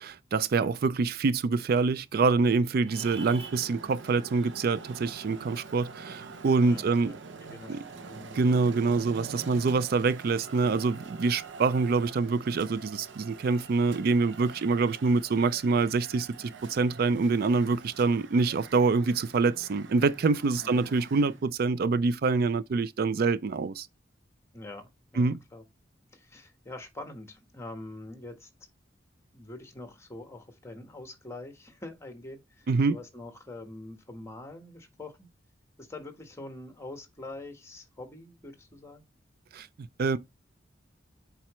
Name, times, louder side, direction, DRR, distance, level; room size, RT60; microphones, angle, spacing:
voice 1, 0.0-7.1 7.7-7.8 8.3-23.9 25.2-25.4 32.7-33.0 39.5-39.7 40.0-40.2, right 4 dB, 55° right, 0.4 m, -26 dB
Traffic noise roadway noise, 2.8-21.5, right 4 dB, 80° right, 0.8 m, -46 dB
voice 2, 6.6-7.1 7.4-9.0 20.6-20.9 24.5-25.6 26.1-28.5 29.3-35.3 35.8-39.0, left 2 dB, 15° left, 1.4 m, -45 dB
7.3 x 4.9 x 3.1 m
head